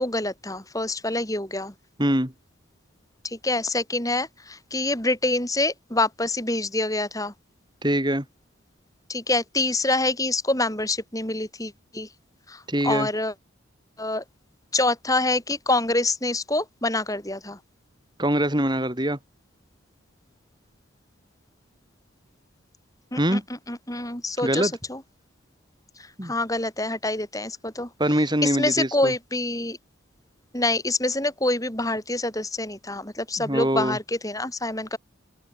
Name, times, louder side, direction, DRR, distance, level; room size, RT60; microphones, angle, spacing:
voice 1, 0.0-1.7 3.2-7.3 9.1-12.1 12.5-13.3 14.0-14.2 14.7-17.6 23.1-23.4 23.7-25.0 26.0-27.9 28.4-29.8 30.5-35.0, left 2 dB, 15° left, 7.5 m, -26 dB
voice 2, 2.0-2.3 7.8-8.2 12.7-13.1 18.2-19.2 23.2-23.4 24.4-24.7 26.2-26.3 28.0-29.1 33.4-34.0, right 1 dB, 20° right, 4.2 m, -23 dB
head